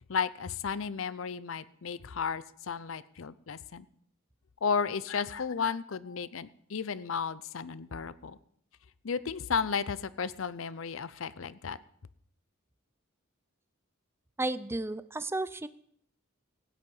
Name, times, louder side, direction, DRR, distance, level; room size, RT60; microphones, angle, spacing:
voice 1, 0.1-3.9 4.6-8.4 9.0-11.8, left 6 dB, 70° left, 17 dB, 0.6 m, -33 dB
voice 2, 14.4-15.7, right 2 dB, 10° right, 14 dB, 0.5 m, -33 dB
16.0 x 9.5 x 5.5 m, 0.67 s
head